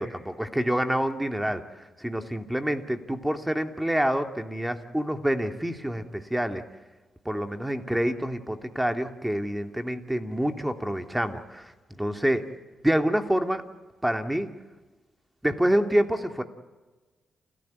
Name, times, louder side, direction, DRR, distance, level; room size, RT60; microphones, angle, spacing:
voice 1, 0.0-6.6 7.2-12.5 12.8-13.6 14.0-14.5 15.4-16.4, equal, 10° right, 6 dB, 2.6 m, -27 dB
29.5 x 13.5 x 9.6 m, 1.2 s
hypercardioid pair, 40°, 0 cm